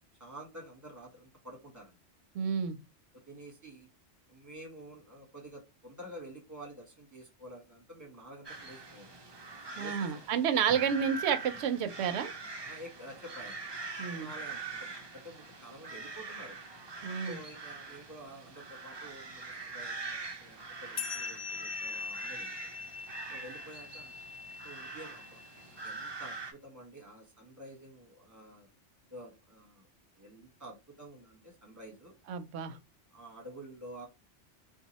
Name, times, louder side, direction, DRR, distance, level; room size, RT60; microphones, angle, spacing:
voice 1, 0.2-2.0 3.3-3.9 4.3-9.2 9.7-10.2 12.7-13.6 14.1-16.6 17.2-22.8 23.3-24.2 24.6-25.4 25.8-28.7 29.1-29.9 30.2-32.1 33.1-34.1, right 1 dB, 15° right, 1.0 m, -49 dB
voice 2, 2.3-2.8 9.8-12.3 14.0-14.3 17.0-17.4 32.3-32.8, right 7 dB, 70° right, 0.8 m, -30 dB
sound 1, 8.4-26.5, right 3 dB, 40° right, 0.3 m, -44 dB
sound 2, 21.0-25.8, left 5 dB, 75° left, 0.9 m, -42 dB
2.8 x 2.2 x 4.0 m
omnidirectional pair, 1.2 m